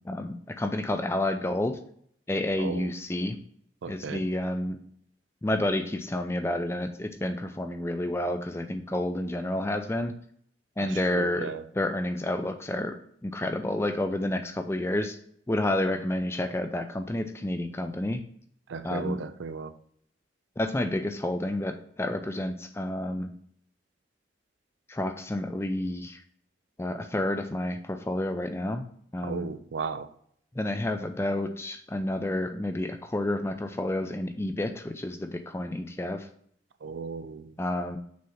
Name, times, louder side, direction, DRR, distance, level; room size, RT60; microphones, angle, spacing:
voice 1, 0.1-1.8 2.3-3.4 3.9-4.8 5.4-10.1 10.8-13.0 13.2-15.2 15.5-18.2 18.8-19.2 20.6-23.3 24.9-26.2 26.8-28.8 29.1-29.5 30.6-36.3 37.6-38.0, left 1 dB, 15° left, 7 dB, 0.4 m, -30 dB
voice 2, 2.6-2.9 3.8-4.2 10.8-11.6 18.7-19.7 29.2-30.1 36.8-37.5, right 5 dB, 85° right, 11 dB, 0.5 m, -35 dB
6.2 x 2.9 x 5.6 m, 0.65 s
head